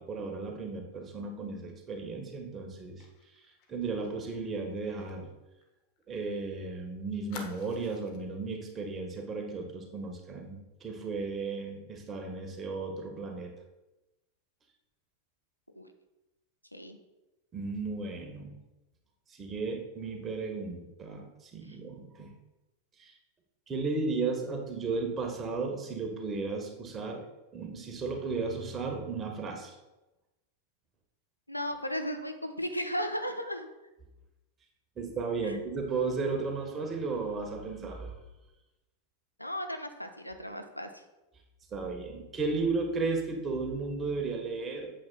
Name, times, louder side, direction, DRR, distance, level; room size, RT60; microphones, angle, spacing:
voice 1, 0.0-3.0 3.7-5.3 6.1-13.5 17.5-18.6 19.3-22.3 23.0-23.1 23.7-27.3 27.5-29.8 35.0-38.1 41.7-45.0, right 4 dB, 20° right, 3 dB, 1.2 m, -34 dB
Fire, 3.0-6.4 6.7-6.8 7.3-8.3 8.7-8.9 9.2-9.4, left 5 dB, 45° left, 1.0 m, -51 dB
voice 2, 31.5-33.7 35.4-35.6 39.4-41.0, equal, 85° left, 7 dB, 0.6 m, -35 dB
8.5 x 7.3 x 2.3 m, 1.0 s
figure-of-eight pair, 90°, 0 cm